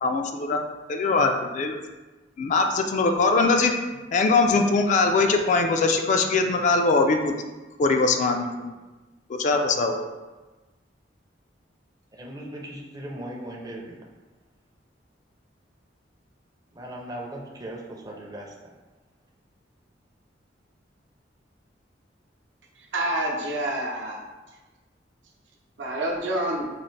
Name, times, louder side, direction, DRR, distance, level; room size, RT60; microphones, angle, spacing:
voice 1, 0.0-0.6 0.9-1.8 2.4-3.7 4.1-7.3 7.8-8.7 9.3-10.0, left 3 dB, 45° left, 5 dB, 0.3 m, -22 dB
voice 2, 12.1-14.0 16.7-18.7, right 1 dB, 20° right, -1 dB, 0.5 m, -38 dB
voice 3, 22.9-24.2 25.8-26.7, right 1 dB, 85° right, -2 dB, 0.7 m, -27 dB
4.1 x 2.4 x 3.1 m, 1.2 s
head